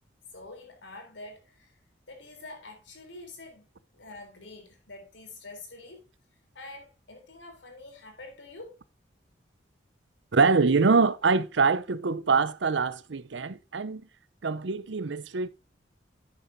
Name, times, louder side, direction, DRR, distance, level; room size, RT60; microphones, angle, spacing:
voice 1, 0.3-1.8 2.1-3.7 3.9-6.0 6.6-8.8, left 2 dB, 85° left, 3.6 m, -46 dB
voice 2, 10.3-14.0 14.4-15.5, right 4 dB, 85° right, 0.7 m, -24 dB
11.0 x 9.7 x 2.7 m
head